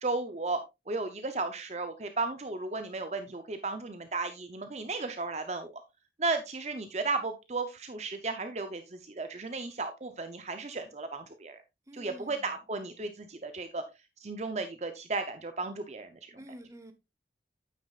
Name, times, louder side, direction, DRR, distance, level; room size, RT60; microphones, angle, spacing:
voice 1, 0.0-0.6 0.9-5.8 6.2-11.6 11.9-13.8 14.2-16.4, right 3 dB, 40° right, 0.7 m, -34 dB
voice 2, 11.9-12.6 13.0-13.1 16.4-16.9, equal, 20° right, 1.0 m, -49 dB
9.2 x 8.5 x 2.4 m
head